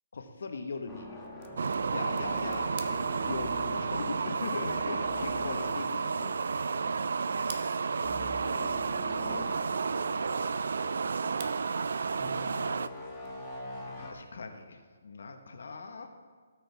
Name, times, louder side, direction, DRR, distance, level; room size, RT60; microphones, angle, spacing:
voice 1, 0.1-1.2 1.9-3.0 3.3-6.6 9.3-9.4 13.8-16.1, left 4 dB, 70° left, 5 dB, 1.3 m, -40 dB
sound 1, 0.9-7.0 7.2-7.5 8.0-9.5 10.0-10.1 12.2-14.1, left 1 dB, 10° left, 1.4 m, -43 dB
sound 2, 1.2-14.7, right 7 dB, 40° right, 0.8 m, -54 dB
sound 3, 1.6-12.9, right 5 dB, 70° right, 0.3 m, -31 dB
voice 2, 7.4-8.7 9.1-13.3, left 5 dB, 40° left, 0 dB, 1.1 m, -52 dB
17.5 x 6.4 x 3.6 m, 1.5 s
hypercardioid pair, 160°, 0 cm